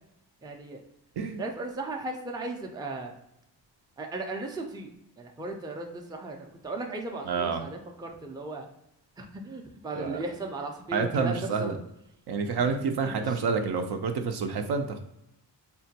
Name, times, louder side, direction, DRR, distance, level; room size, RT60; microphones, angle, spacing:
voice 1, 0.4-0.8 1.4-3.1 4.0-4.9 5.2-8.7 9.2-11.7 13.2-13.4, right 2 dB, 10° right, 2 dB, 0.4 m, -36 dB
voice 2, 7.3-7.6 10.0-10.2 10.9-11.8 12.3-15.0, right 5 dB, 65° right, 6 dB, 0.5 m, -28 dB
3.7 x 2.1 x 2.8 m, 0.81 s
cardioid pair, 90°, 43 cm